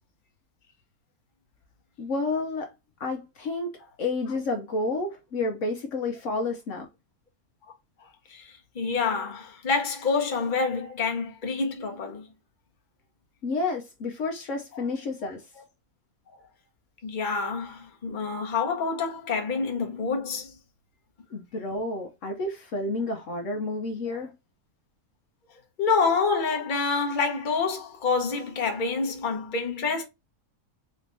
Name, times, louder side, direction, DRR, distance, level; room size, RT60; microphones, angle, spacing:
voice 1, 2.0-2.7 3.0-3.7 4.0-6.9 13.4-15.4 21.3-24.3, left 3 dB, 65° left, 1.1 m, -30 dB
voice 2, 8.3-12.3 14.7-14.9 17.0-20.5 24.1-24.2 25.8-30.0, left 4 dB, 40° left, 1.0 m, -27 dB
4.2 x 3.3 x 2.6 m
omnidirectional pair, 1.5 m